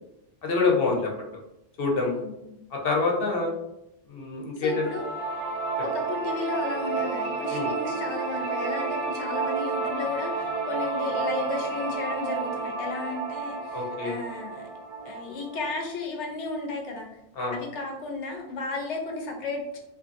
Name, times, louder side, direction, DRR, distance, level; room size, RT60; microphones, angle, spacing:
voice 1, 0.4-1.1 1.8-2.2 2.7-3.5 4.1-4.9 7.5-7.7 13.7-14.2 17.4-17.6, left 3 dB, 60° left, 0 dB, 0.9 m, -26 dB
voice 2, 2.1-2.6 4.6-5.1 5.8-14.7 15.0-17.1 17.5-19.8, left 3 dB, 90° left, 1 dB, 1.0 m, -34 dB
sound 1, 4.7-15.7, right 4 dB, 85° right, 0.9 m, -31 dB
2.7 x 2.6 x 2.5 m, 0.85 s
omnidirectional pair, 1.2 m